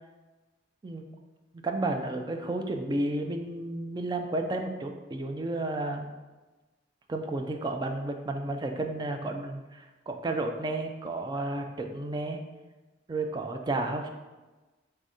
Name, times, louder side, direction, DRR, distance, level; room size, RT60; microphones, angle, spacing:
voice 1, 1.6-6.1 7.1-9.6 10.1-12.4 13.1-14.1, right 2 dB, 20° right, 4 dB, 0.3 m, -32 dB
4.9 x 3.4 x 2.7 m, 1.2 s
head